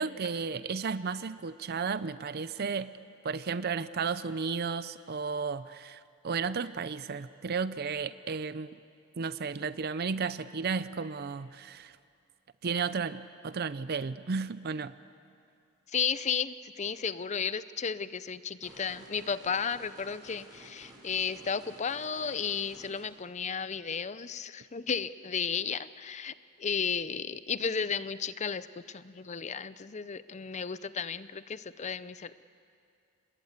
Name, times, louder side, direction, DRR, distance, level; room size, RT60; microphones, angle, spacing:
voice 1, 0.0-3.0 3.2-8.7 9.2-12.0 12.6-14.9, right 5 dB, 45° right, 15 dB, 0.5 m, -33 dB
voice 2, 15.9-26.3 26.6-32.4, left 6 dB, 30° left, 15 dB, 0.5 m, -33 dB
sound 1, 18.6-23.0, right 1 dB, 20° right, 5.3 m, -53 dB
27.0 x 20.5 x 8.2 m, 2.5 s
head